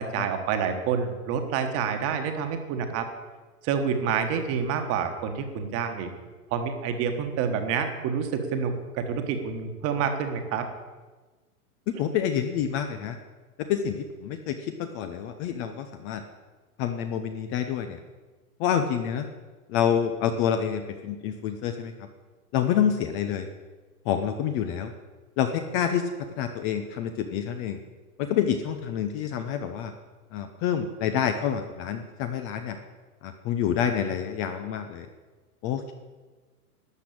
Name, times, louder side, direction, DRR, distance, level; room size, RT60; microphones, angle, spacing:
voice 1, 0.0-3.1 3.6-6.1 6.5-10.6, right 6 dB, 30° right, 6 dB, 1.5 m, -28 dB
voice 2, 12.0-13.2 13.6-16.2 16.8-18.0 18.6-19.3 19.7-21.9 22.5-23.5 24.1-24.9 25.4-26.0 26.4-27.8 28.2-29.9 30.3-32.8 33.2-35.1 35.6-35.9, left 8 dB, 25° left, 7 dB, 0.7 m, -27 dB
12.5 x 6.0 x 8.5 m, 1.3 s
hypercardioid pair, 130°, 46 cm